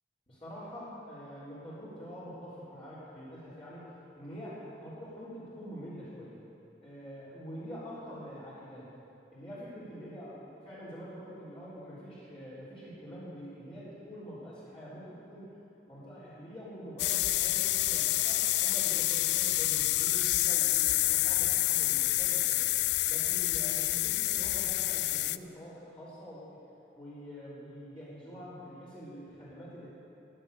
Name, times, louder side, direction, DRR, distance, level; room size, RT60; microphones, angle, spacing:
voice 1, 0.3-3.9 4.2-6.4 6.8-8.9 9.3-15.5 15.9-22.7 23.1-26.6 26.9-29.9, equal, 30° left, -11 dB, 3.7 m, -45 dB
sound 1, 17.0-25.4, left 17 dB, 75° left, 0.3 m, -28 dB
15.5 x 10.0 x 6.5 m, 2.9 s
head